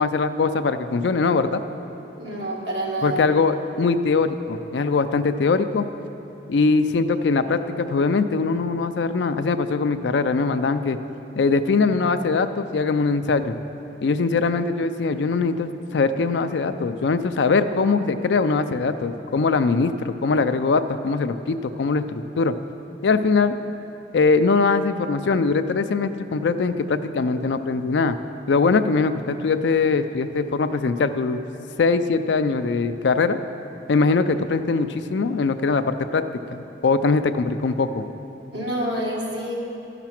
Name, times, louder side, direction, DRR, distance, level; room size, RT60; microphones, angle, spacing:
voice 1, 0.0-1.6 3.0-5.9 6.5-11.0 11.4-13.6 14.0-22.6 23.0-23.6 24.1-28.2 28.5-31.4 31.8-33.4 33.9-36.2 36.5-38.0, left 4 dB, 80° left, 10 dB, 0.4 m, -21 dB
voice 2, 2.2-3.2 38.5-39.5, right 1 dB, 85° right, -4 dB, 2.0 m, -27 dB
12.5 x 5.9 x 5.9 m, 2.9 s
head